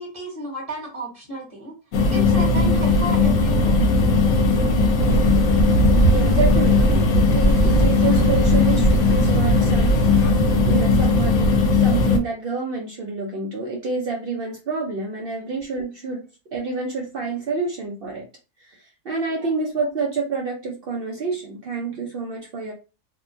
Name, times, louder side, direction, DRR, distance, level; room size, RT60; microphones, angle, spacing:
voice 1, 0.0-1.8 2.1-3.8 19.3-19.5, right 1 dB, 25° right, -2 dB, 1.2 m, -33 dB
sound 1, 1.9-12.2, left 3 dB, 70° left, 0.9 m, -18 dB
sound 2, 5.1-10.3, right 2 dB, 40° left, 1.0 m, -23 dB
voice 2, 6.1-10.4 10.7-16.2 16.5-18.3 18.6-22.7, right 4 dB, 85° right, -1 dB, 0.5 m, -28 dB
2.9 x 2.2 x 2.5 m, 0.31 s
omnidirectional pair, 1.7 m